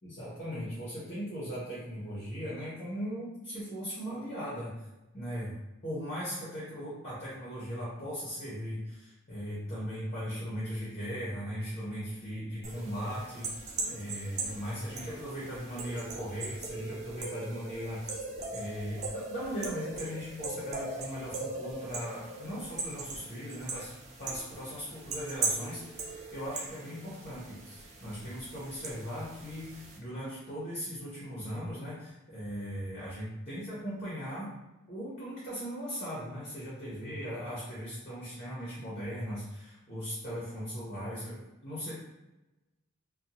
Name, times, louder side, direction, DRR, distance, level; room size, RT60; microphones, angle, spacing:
voice 1, 0.0-4.9 5.1-5.5 5.8-13.6 13.9-18.2 18.5-23.9 24.2-34.5 34.9-41.9, equal, 30° left, -8 dB, 0.7 m, -38 dB
sound 1, 12.6-30.0, right 3 dB, 30° right, 0.3 m, -40 dB
2.7 x 2.1 x 2.7 m, 1.0 s
head